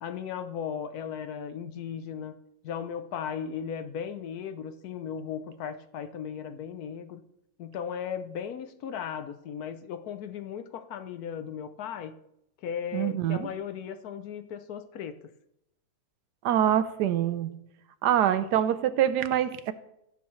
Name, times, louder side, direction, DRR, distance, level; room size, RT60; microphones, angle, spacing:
voice 1, 0.0-2.3 2.6-7.2 7.6-12.1 12.6-15.1, left 8 dB, 75° left, 10 dB, 1.1 m, -36 dB
voice 2, 12.9-13.5 16.4-17.5 18.0-19.7, right 10 dB, 85° right, 13 dB, 1.2 m, -25 dB
16.5 x 7.1 x 3.2 m, 0.81 s
omnidirectional pair, 1.7 m